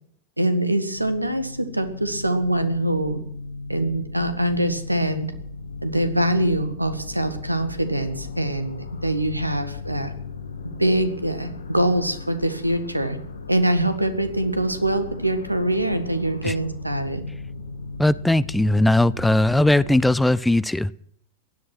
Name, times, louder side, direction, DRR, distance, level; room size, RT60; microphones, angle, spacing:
voice 1, 0.4-3.2 3.7-5.3 5.8-10.1 10.8-13.2 13.5-17.3, right 1 dB, 85° right, 10 dB, 1.7 m, -24 dB
sound 1, 0.9-20.1, left 3 dB, 70° left, 1.7 m, -37 dB
voice 2, 18.0-20.9, left 1 dB, 5° left, 19 dB, 0.5 m, -19 dB
16.0 x 11.0 x 6.1 m, 0.67 s
figure-of-eight pair, 90°, 0 cm